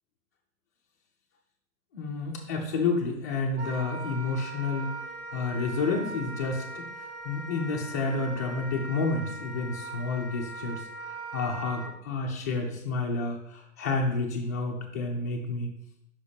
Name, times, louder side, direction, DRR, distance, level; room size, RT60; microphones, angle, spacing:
voice 1, 1.9-4.9 5.3-6.9 7.2-15.7, left 3 dB, 15° left, -3 dB, 0.3 m, -30 dB
Wind instrument woodwind instrument, 3.6-11.9, right 3 dB, 45° right, 1.0 m, -40 dB
5.6 x 4.2 x 5.0 m, 0.77 s
hypercardioid pair, 150°, 41 cm